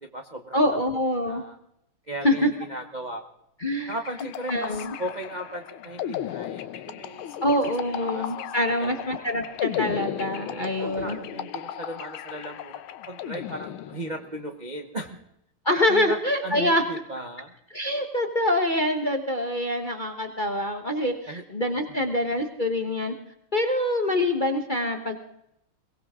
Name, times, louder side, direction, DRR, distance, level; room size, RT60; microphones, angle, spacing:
voice 1, 0.0-0.6 1.2-1.6 2.1-3.2 3.9-7.5 8.0-8.4 8.8-9.1 10.5-15.2 15.9-16.2 16.4-17.5 21.3-21.4 21.9-22.0, right 1 dB, 40° right, 5 dB, 0.6 m, -36 dB
voice 2, 0.5-1.4 2.2-2.5 3.6-3.9 4.5-4.9 7.4-11.2 15.6-16.8 17.7-23.1 23.5-25.2, left 1 dB, 30° left, 5 dB, 0.9 m, -25 dB
sound 1, 3.9-14.3, left 10 dB, 75° left, 1.6 m, -35 dB
22.5 x 17.5 x 3.7 m, 0.78 s
omnidirectional pair, 2.4 m